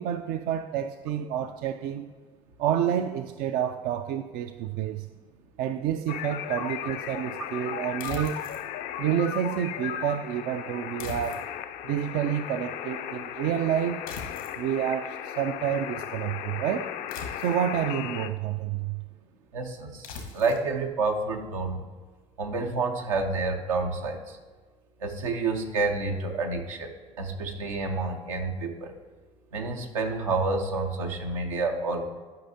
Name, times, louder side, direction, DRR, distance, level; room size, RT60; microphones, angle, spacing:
voice 1, 0.0-2.1 2.6-5.1 5.6-8.4 9.0-11.4 11.8-14.0 14.6-16.9 17.4-19.0, right 10 dB, 65° right, 0.4 m, -29 dB
sound 1, 6.1-18.3, left 10 dB, 60° left, 0.5 m, -36 dB
sound 2, 8.0-8.7 11.0-11.7 14.1-14.6 17.1-17.7 20.0-20.7, left 5 dB, 85° left, 1.3 m, -40 dB
voice 2, 19.5-20.1 20.3-21.8 22.4-24.4 25.0-26.9 27.2-28.9 29.5-32.1, right 3 dB, 90° right, 0.7 m, -29 dB
11.5 x 5.4 x 2.8 m
hypercardioid pair, 65°, 17 cm